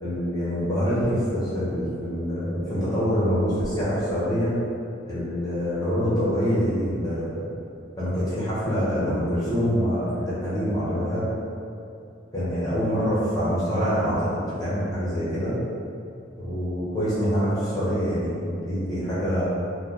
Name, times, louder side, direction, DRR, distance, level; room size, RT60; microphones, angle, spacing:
voice 1, 0.0-4.5 5.1-7.5 8.0-11.3 12.3-15.6 16.4-19.4, equal, 20° left, -11 dB, 1.0 m, -25 dB
4.4 x 2.1 x 2.9 m, 2.5 s
head